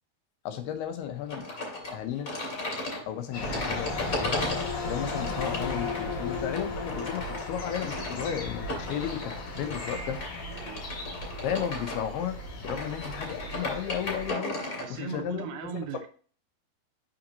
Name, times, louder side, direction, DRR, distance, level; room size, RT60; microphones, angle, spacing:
voice 1, 0.5-1.5 1.9-2.3 3.1-4.4 4.9-10.2 11.4-12.4 12.6-14.6 14.9-15.5, left 9 dB, 90° left, 6 dB, 2.9 m, -34 dB
sound 1, 1.3-14.9, left 2 dB, 35° left, 2.8 m, -36 dB
sound 2, 3.3-14.3, left 3 dB, 60° left, 2.7 m, -36 dB
voice 2, 10.5-10.8 14.8-16.1, right 5 dB, 80° right, 7 dB, 2.2 m, -37 dB
6.4 x 5.8 x 2.7 m, 0.41 s
omnidirectional pair, 4.5 m